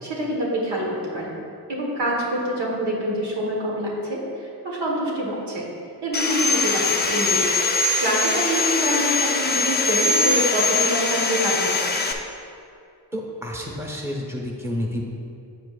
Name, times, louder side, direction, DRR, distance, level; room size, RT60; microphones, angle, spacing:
voice 1, 0.0-1.4 1.7-5.7 6.0-7.4 8.0-12.1, right 1 dB, 85° right, -3 dB, 1.6 m, -26 dB
Sawing, 6.1-12.1, left 3 dB, 25° left, 0.6 m, -22 dB
voice 2, 13.1-15.0, left 1 dB, 5° right, -1 dB, 1.2 m, -29 dB
8.7 x 7.7 x 2.5 m, 2.5 s
wide cardioid pair, 80°, 41 cm